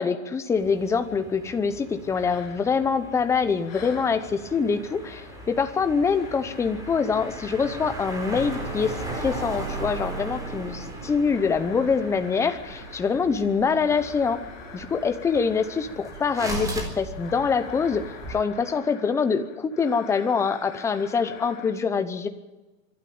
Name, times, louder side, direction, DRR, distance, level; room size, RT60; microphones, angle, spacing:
voice 1, 0.0-14.4 14.7-22.3, left 5 dB, 5° left, 10 dB, 0.8 m, -25 dB
sound 1, 0.5-18.4, right 2 dB, 10° right, 4.2 m, -37 dB
sound 2, 2.1-3.3 3.6-21.7, left 5 dB, 45° left, 7.8 m, -46 dB
25.0 x 12.0 x 8.7 m, 1.1 s
hypercardioid pair, 150°, 40 cm